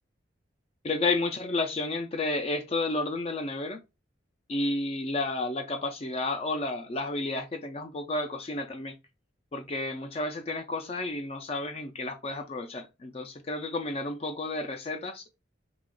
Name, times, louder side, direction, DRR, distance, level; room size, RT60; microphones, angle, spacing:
voice 1, 0.8-3.8 4.5-9.0 9.5-15.3, left 2 dB, 30° left, 0.4 m, -31 dB
2.9 x 2.4 x 3.6 m
head